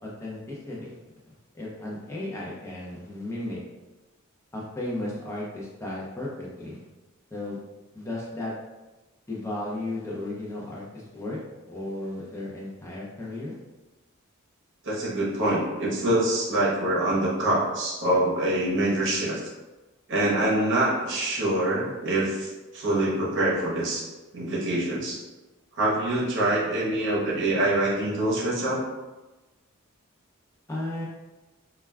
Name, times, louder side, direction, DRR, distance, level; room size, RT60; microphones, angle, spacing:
voice 1, 0.0-1.0 1.5-3.6 4.5-6.8 7.3-7.6 7.9-8.5 9.3-11.4 11.7-13.6 30.7-31.1, left 1 dB, 15° left, -5 dB, 0.5 m, -34 dB
voice 2, 14.8-19.4 20.1-24.0 24.3-25.2 25.8-28.8, right 1 dB, 60° right, -5 dB, 0.8 m, -25 dB
2.3 x 2.2 x 3.3 m, 1.1 s
head